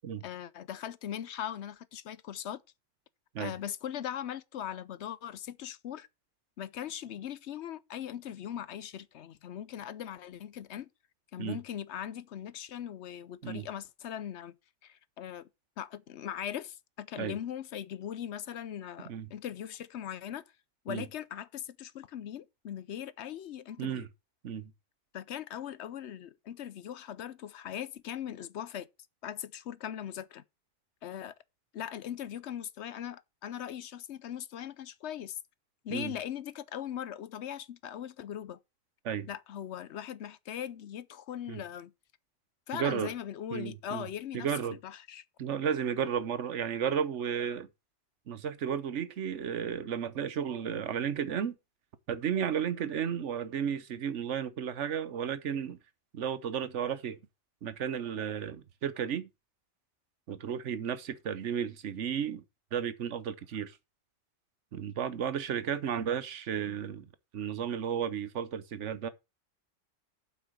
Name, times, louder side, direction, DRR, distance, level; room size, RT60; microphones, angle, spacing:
voice 1, 0.2-2.6 3.4-6.1 6.6-10.9 11.3-14.6 14.8-15.5 15.8-20.4 20.8-24.1 25.1-28.9 29.2-30.4 31.0-31.3 31.7-35.4 35.8-38.6 39.3-41.9 42.7-44.5 44.8-45.2, left 10 dB, 70° left, 0.9 m, -40 dB
voice 2, 42.7-43.1 43.5-44.1 44.3-44.8 45.4-47.7 48.3-51.6 52.1-55.8 56.1-57.2 57.6-59.3 60.3-62.4 62.7-63.8 64.7-69.1, right 8 dB, 75° right, 1.2 m, -33 dB
7.8 x 5.9 x 6.1 m
omnidirectional pair, 1.2 m